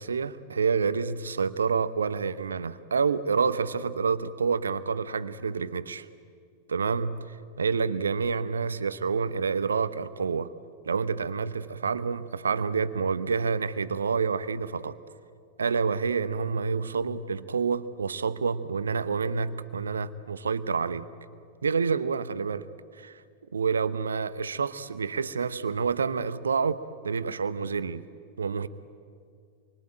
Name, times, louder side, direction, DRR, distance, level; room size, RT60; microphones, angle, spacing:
voice 1, 0.0-6.1 6.7-10.5 10.8-15.0 15.6-21.1 21.6-22.6 23.0-23.2 23.5-28.1 28.4-28.7, right 5 dB, 70° right, 14 dB, 0.9 m, -28 dB
27.5 x 23.5 x 8.9 m, 2.3 s
figure-of-eight pair, 90°, 0 cm